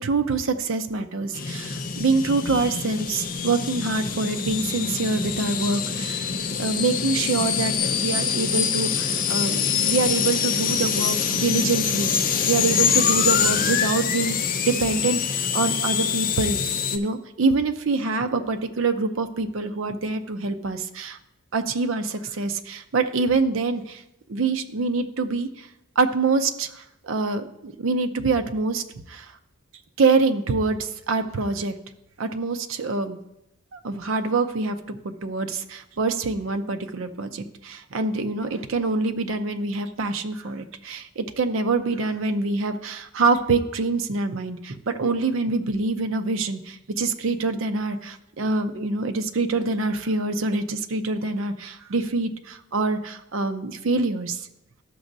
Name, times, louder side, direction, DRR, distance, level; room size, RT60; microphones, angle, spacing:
voice 1, 0.0-6.3 6.6-12.1 12.4-16.6 16.9-21.2 21.5-24.0 24.3-25.7 26.0-29.3 30.0-31.7 32.2-33.2 33.7-54.5, right 3 dB, 70° right, 8 dB, 0.6 m, -25 dB
sound 1, 1.3-17.0, left 7 dB, 40° left, 0.4 m, -25 dB
12.5 x 6.1 x 2.6 m, 0.86 s
head